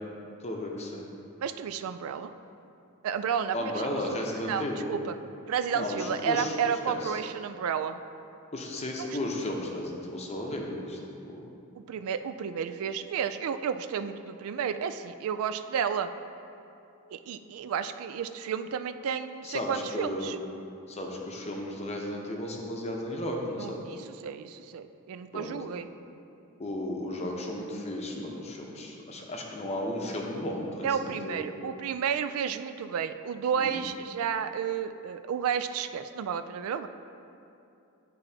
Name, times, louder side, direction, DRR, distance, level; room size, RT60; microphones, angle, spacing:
voice 1, 0.4-1.1 3.5-5.0 5.7-6.5 6.9-7.1 8.5-11.5 19.4-20.3 20.9-23.9 25.3-25.5 26.6-31.5 33.6-33.8, left 1 dB, 30° left, 0 dB, 0.7 m, -34 dB
voice 2, 1.4-2.3 3.0-4.0 4.4-5.2 5.5-8.0 9.0-9.2 11.8-16.1 17.1-20.4 23.6-25.9 30.8-36.9, right 7 dB, 70° right, 10 dB, 0.3 m, -32 dB
11.5 x 4.0 x 2.8 m, 2.7 s
head